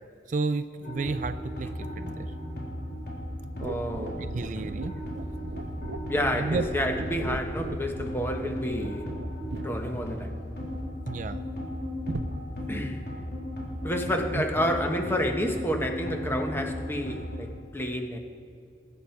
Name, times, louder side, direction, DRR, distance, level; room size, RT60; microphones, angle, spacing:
voice 1, 0.3-2.3 4.2-4.9 6.4-6.7 11.1-11.4 14.3-14.4, right 3 dB, 45° right, 10 dB, 0.4 m, -31 dB
sound 1, 0.8-17.4, left 1 dB, 60° left, 3.3 m, -36 dB
voice 2, 3.6-4.5 6.1-9.1 9.6-10.3 12.7-13.0 13.8-18.2, equal, 15° left, 4 dB, 1.1 m, -29 dB
sound 2, 3.6-11.2 12.1-12.3, right 2 dB, 90° right, 0.6 m, -39 dB
20.5 x 8.8 x 4.6 m, 2.5 s
head